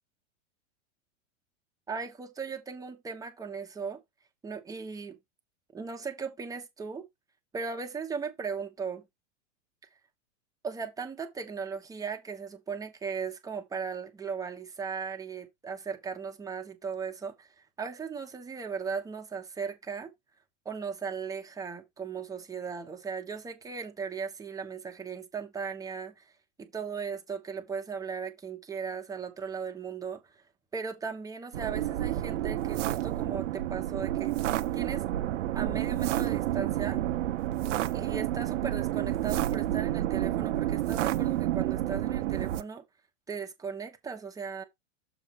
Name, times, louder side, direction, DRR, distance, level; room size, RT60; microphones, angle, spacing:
voice 1, 1.9-4.0 4.4-5.2 5.7-7.0 7.5-9.1 10.6-20.1 20.6-26.3 26.6-30.4 30.7-34.3 34.7-35.1 35.5-37.0 37.9-42.8 43.3-44.6, right 5 dB, 10° right, 1.0 m, -37 dB
sound 1, 31.5-42.6, right 14 dB, 65° right, 0.9 m, -30 dB
7.0 x 3.5 x 5.7 m
hypercardioid pair, 145°, 40 cm